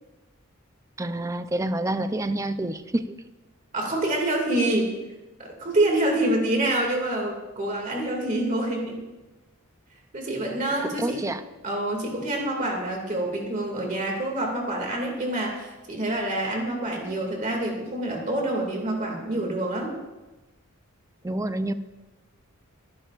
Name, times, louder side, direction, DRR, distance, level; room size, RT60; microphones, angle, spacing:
voice 1, 1.0-3.2 10.8-11.4 21.2-21.7, right 1 dB, 15° right, 10 dB, 0.5 m, -28 dB
voice 2, 3.7-4.9 5.4-9.0 10.1-11.2 11.6-19.9, right 1 dB, 40° right, 0 dB, 2.3 m, -26 dB
22.5 x 11.0 x 2.5 m, 1.1 s
head